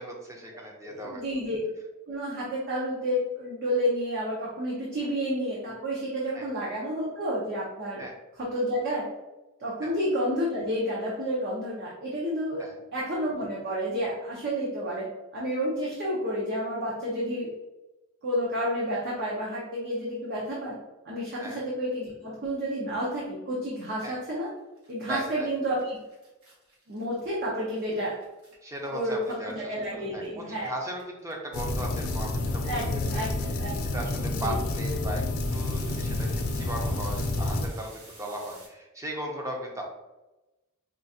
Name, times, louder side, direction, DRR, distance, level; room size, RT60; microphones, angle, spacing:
voice 1, 0.0-1.2 6.3-6.5 8.0-8.1 9.8-9.9 12.6-12.8 21.4-21.6 24.0-24.2 25.0-25.5 28.6-33.3 33.9-37.9 38.2-39.8, right 1 dB, 15° right, 0 dB, 0.6 m, -37 dB
voice 2, 0.5-1.6 2.1-8.0 8.4-9.1 9.6-12.6 12.9-15.1 15.3-17.5 18.2-20.7 21.0-24.5 24.9-26.0 26.9-28.2 28.9-29.2 29.4-30.7 32.6-33.7 34.3-34.6, equal, 50° right, -5 dB, 0.8 m, -30 dB
sound 1, 24.5-24.6 24.8-30.3 30.5-38.7, right 2 dB, 75° right, 1.3 m, -52 dB
sound 2, 31.5-37.7, left 2 dB, 85° left, 0.5 m, -29 dB
4.7 x 2.4 x 2.7 m, 1.0 s
head